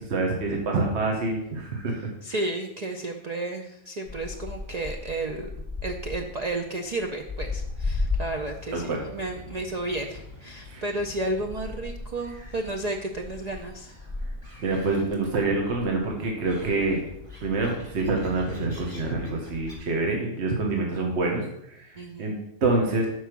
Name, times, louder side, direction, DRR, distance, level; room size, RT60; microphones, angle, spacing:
voice 1, 0.1-2.1 8.7-9.0 10.7-10.8 14.6-17.0 17.4-22.4 22.6-23.1, right 3 dB, 55° right, 0 dB, 1.3 m, -26 dB
voice 2, 2.2-5.5 5.8-13.9 22.0-22.4, right 2 dB, 80° right, 2 dB, 0.3 m, -32 dB
Gull seagull, 4.0-19.8, left 3 dB, 25° right, 1.7 m, -37 dB
6.7 x 4.7 x 5.9 m, 0.80 s
omnidirectional pair, 1.4 m